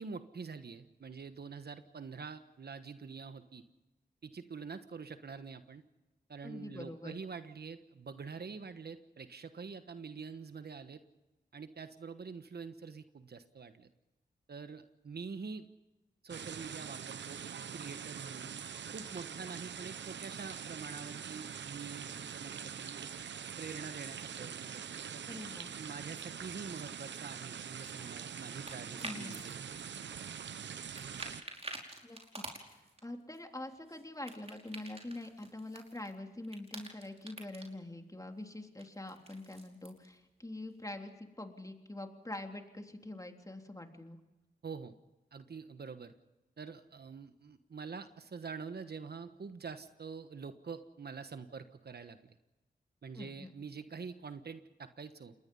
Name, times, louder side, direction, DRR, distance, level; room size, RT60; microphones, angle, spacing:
voice 1, 0.0-3.6 4.2-5.8 6.3-11.0 11.5-13.9 14.5-15.7 16.2-18.5 18.9-23.1 23.6-25.2 25.8-29.9 44.6-44.9 45.3-46.1 46.6-52.4 53.0-55.3, right 5 dB, 65° right, 10 dB, 1.3 m, -46 dB
voice 2, 6.4-7.2 25.3-25.7 29.0-29.3 32.0-32.2 33.0-44.2 53.1-53.5, left 1 dB, 20° left, 4 dB, 3.4 m, -45 dB
sound 1, 16.3-31.4, right 7 dB, 85° right, 0.9 m, -44 dB
sound 2, 27.6-29.5 29.8-30.7 30.9-33.0 33.3-36.2 36.4-37.7 38.8-40.1, right 2 dB, 35° right, 5.2 m, -48 dB
27.5 x 21.0 x 5.6 m, 1.1 s
cardioid pair, 50°, 18 cm